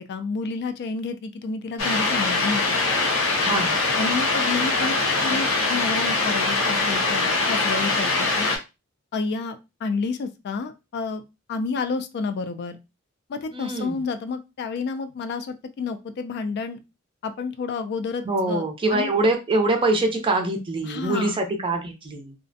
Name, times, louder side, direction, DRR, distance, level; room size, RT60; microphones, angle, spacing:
voice 1, 0.0-2.8 4.0-4.9 5.2-8.5 9.1-11.2 11.5-12.8 13.3-16.8 17.2-18.7 18.9-19.1 20.8-21.4, left 4 dB, 50° left, 9 dB, 0.3 m, -30 dB
sound 1, 1.8-8.6, left 3 dB, 70° left, 0.8 m, -23 dB
voice 2, 3.4-3.8 13.5-14.0 18.2-22.3, right 2 dB, 25° right, 4 dB, 0.4 m, -24 dB
2.4 x 2.1 x 2.6 m, 0.25 s
head